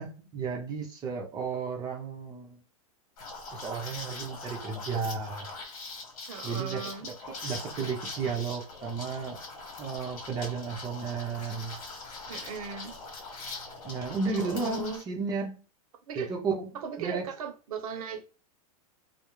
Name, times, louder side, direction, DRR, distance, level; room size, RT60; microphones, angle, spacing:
voice 1, 0.0-2.6 3.5-5.5 6.4-9.4 9.8-11.8 13.8-15.5 16.1-16.7 17.0-17.3, right 5 dB, 20° right, 0.6 m, -33 dB
Liquid, 3.2-15.0, left 3 dB, 70° left, 1.1 m, -42 dB
voice 2, 6.3-7.1 12.3-12.9 14.3-15.0 16.1-16.3 16.7-18.2, right 6 dB, 75° right, 0.7 m, -38 dB
2.3 x 2.0 x 3.0 m
supercardioid pair, 140°, 19 cm